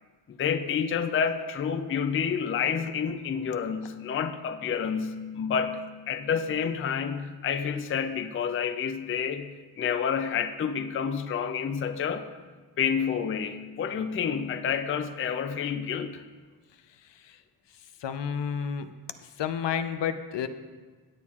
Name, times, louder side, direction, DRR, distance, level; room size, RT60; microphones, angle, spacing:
voice 1, 0.3-12.3 12.8-16.2, left 7 dB, 30° left, 9 dB, 0.4 m, -29 dB
voice 2, 17.0-17.4 17.7-18.9 19.2-20.5, left 8 dB, 80° left, 10 dB, 0.6 m, -31 dB
16.5 x 8.4 x 2.4 m, 1.4 s
wide cardioid pair, 165°, 43 cm